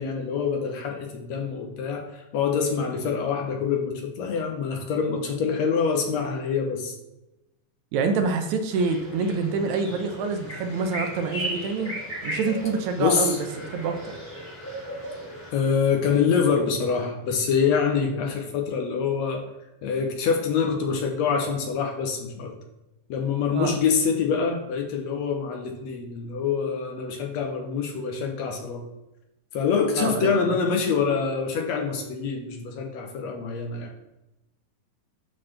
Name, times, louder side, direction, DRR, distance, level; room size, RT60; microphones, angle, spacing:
voice 1, 0.0-6.9 13.0-13.4 15.5-19.4 19.8-22.5 23.1-28.8 29.5-33.9, left 6 dB, 70° left, 3 dB, 1.9 m, -25 dB
voice 2, 7.9-11.9 12.2-14.1 23.5-23.8 30.0-30.6, right 4 dB, 75° right, 6 dB, 2.0 m, -26 dB
sound 1, 8.7-15.5, right 1 dB, 5° left, 2.2 m, -36 dB
11.5 x 4.1 x 3.3 m, 0.94 s
omnidirectional pair, 3.5 m